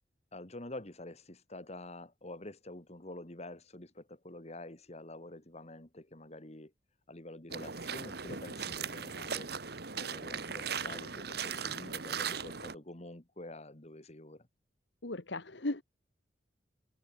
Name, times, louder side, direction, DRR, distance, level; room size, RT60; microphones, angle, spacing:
voice 1, 0.3-6.7 7.1-9.5 9.9-14.5, left 1 dB, 35° left, 2.5 m, -47 dB
sound 1, 7.5-12.7, right 6 dB, 60° right, 2.0 m, -38 dB
voice 2, 15.0-15.8, left 2 dB, 70° left, 1.7 m, -36 dB
head